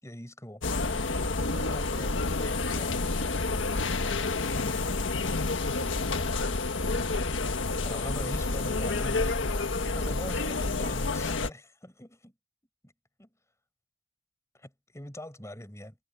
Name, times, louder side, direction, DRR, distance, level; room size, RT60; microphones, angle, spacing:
voice 1, 0.0-0.6 1.5-3.3 7.8-9.7 10.0-12.3 12.8-12.9 13.2-13.3 14.5-16.0, left 1 dB, 15° left, 5.5 m, -43 dB
sound 1, 0.6-11.5, left 3 dB, 85° left, 1.6 m, -29 dB
head